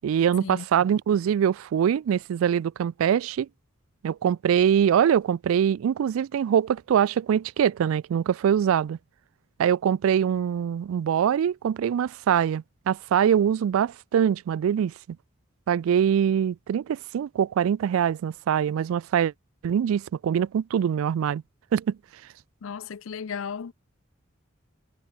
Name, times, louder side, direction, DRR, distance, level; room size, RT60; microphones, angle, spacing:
voice 1, 0.0-3.5 4.0-9.0 9.6-14.9 15.7-19.3 19.6-21.4 21.7-22.0, right 8 dB, 90° right, 0.3 m, -23 dB
voice 2, 22.6-23.7, left 6 dB, 75° left, 0.5 m, -35 dB
head